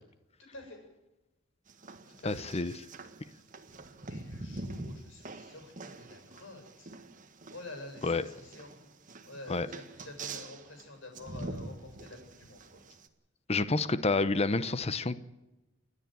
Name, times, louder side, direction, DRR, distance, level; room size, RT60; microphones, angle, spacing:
voice 1, 0.4-0.8 2.2-2.4 3.6-6.9 7.5-8.8 9.2-12.8, left 2 dB, 70° left, 4 dB, 7.4 m, -48 dB
sound 1, 1.7-13.1, right 2 dB, 40° right, 1.6 m, -45 dB
voice 2, 2.2-2.7 8.0-8.2 9.5-9.7 13.5-15.2, left 3 dB, 30° left, 13 dB, 0.9 m, -29 dB
29.5 x 9.9 x 9.3 m, 1.0 s
head